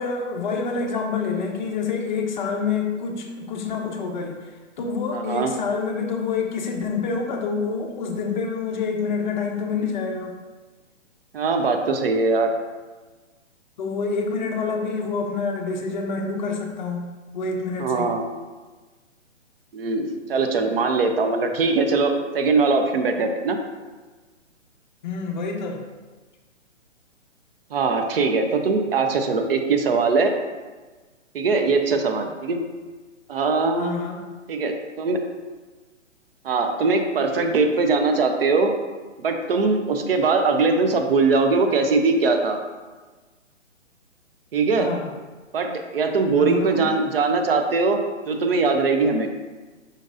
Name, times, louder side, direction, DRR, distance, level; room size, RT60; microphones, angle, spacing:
voice 1, 0.0-10.3 13.8-18.1 25.0-25.8 33.8-34.2 44.8-45.1 46.4-46.9, left 4 dB, 40° left, 2 dB, 0.6 m, -27 dB
voice 2, 5.1-5.5 11.3-12.5 17.8-18.2 19.7-23.6 27.7-30.3 31.3-32.6 33.3-34.0 34.5-35.2 36.4-38.7 39.2-42.6 44.5-44.9 45.5-49.3, right 4 dB, 50° right, 5 dB, 0.6 m, -21 dB
5.2 x 3.8 x 2.5 m, 1.3 s
hypercardioid pair, 145°, 38 cm